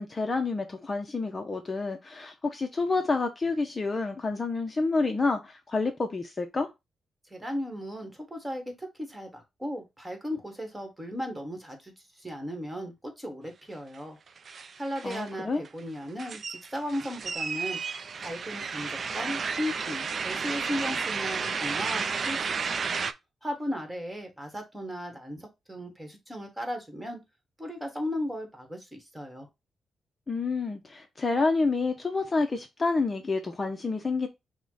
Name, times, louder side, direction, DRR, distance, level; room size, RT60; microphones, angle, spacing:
voice 1, 0.0-6.7 15.0-15.6 30.3-34.3, left 3 dB, 30° left, 0.6 m, -28 dB
voice 2, 7.3-14.2 14.8-17.8 18.2-22.9 23.4-27.2 27.6-29.5, equal, 10° right, 1.5 m, -36 dB
sound 1, 13.9-14.0 14.3-15.3 15.7-23.1, right 5 dB, 50° right, 0.4 m, -32 dB
5.9 x 2.2 x 3.9 m
cardioid pair, 105°, 0 cm